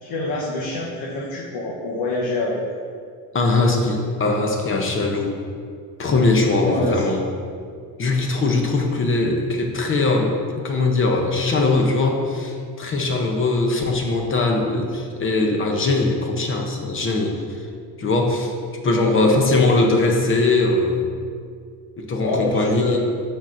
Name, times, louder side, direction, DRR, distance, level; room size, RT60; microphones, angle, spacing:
voice 1, 0.0-2.6 6.6-7.2 18.9-19.8 22.2-23.0, left 2 dB, 65° left, -4 dB, 1.1 m, -26 dB
voice 2, 3.3-5.3 6.0-7.2 8.0-10.3 10.6-17.4 18.0-18.5 18.8-21.0 22.0-23.0, left 2 dB, 30° left, 2 dB, 0.7 m, -20 dB
12.5 x 4.3 x 2.6 m, 2.2 s
cardioid pair, 140°, 40 cm